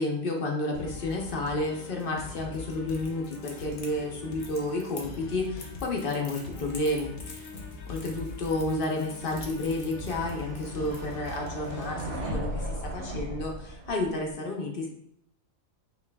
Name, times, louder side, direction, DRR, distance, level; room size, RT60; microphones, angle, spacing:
voice 1, 0.0-7.5 7.9-14.9, left 2 dB, 50° left, 1 dB, 0.8 m, -31 dB
sound 1, 0.7-12.2, left 3 dB, 70° left, 1.1 m, -43 dB
Crackle, 2.9-11.3, left 4 dB, 90° left, 1.3 m, -48 dB
sound 2, 9.4-14.3, right 1 dB, 85° right, 1.5 m, -37 dB
5.9 x 3.3 x 2.2 m, 0.74 s
omnidirectional pair, 1.4 m